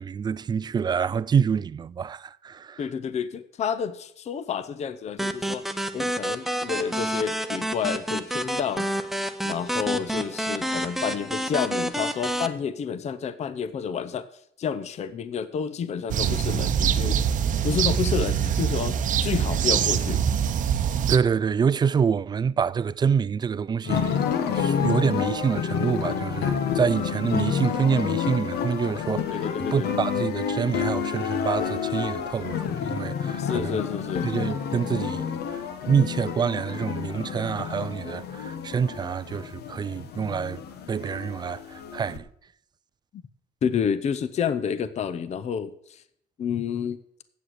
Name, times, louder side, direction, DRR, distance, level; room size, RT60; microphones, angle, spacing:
voice 1, 0.0-2.8 21.1-24.2 24.5-29.4 29.7-33.8 34.2-40.6 40.9-42.2, right 6 dB, 25° right, 0.3 m, -26 dB
voice 2, 2.8-5.7 5.9-8.9 9.4-14.3 14.6-17.2 17.6-20.2 29.3-29.9 33.4-34.3 43.6-46.0 46.4-47.0, left 7 dB, 40° left, 0.6 m, -29 dB
sound 1, 5.2-12.5, equal, ahead, 0.8 m, -29 dB
sound 2, 16.1-21.2, right 8 dB, 50° right, 0.7 m, -24 dB
sound 3, 23.8-42.2, left 7 dB, 70° left, 1.2 m, -29 dB
8.2 x 7.5 x 7.9 m
cardioid pair, 110°, 17 cm